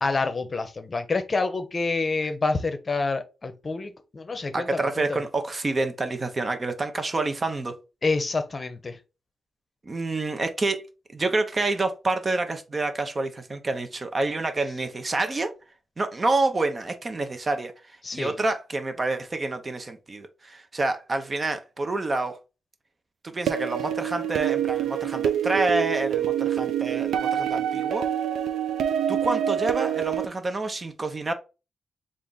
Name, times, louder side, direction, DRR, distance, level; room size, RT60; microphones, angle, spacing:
voice 1, 0.0-5.2 8.0-9.0 18.0-18.3, left 3 dB, 40° left, 0.7 m, -27 dB
voice 2, 4.5-7.8 9.8-10.8 11.1-15.5 16.0-17.7 18.1-22.4 23.2-28.0 29.1-31.3, right 2 dB, 35° right, 0.7 m, -28 dB
sound 1, 23.5-30.3, right 9 dB, 85° right, 0.3 m, -26 dB
3.4 x 2.5 x 3.9 m
cardioid pair, 65°, 0 cm